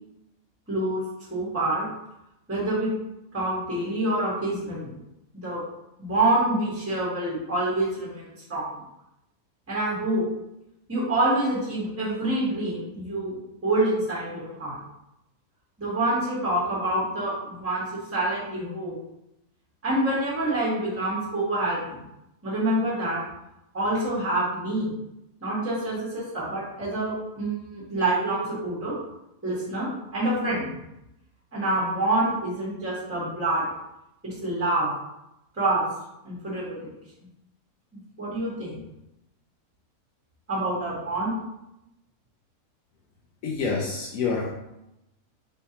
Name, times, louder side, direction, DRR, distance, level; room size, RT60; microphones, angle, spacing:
voice 1, 0.7-1.0 1.3-1.9 2.5-2.9 3.3-4.9 5.3-5.6 6.0-8.7 9.7-10.2 10.9-13.4 13.6-14.8 15.8-18.9 19.8-22.0 22.4-23.2 23.7-24.9 25.4-28.9 29.4-30.7 31.5-33.6 34.2-34.9 35.6-35.9 36.2-36.9 38.2-38.8 40.5-41.4, right 1 dB, 10° right, -7 dB, 1.1 m, -26 dB
voice 2, 43.4-44.5, left 4 dB, 70° left, -3 dB, 1.0 m, -27 dB
4.4 x 3.3 x 2.8 m, 0.87 s
omnidirectional pair, 1.6 m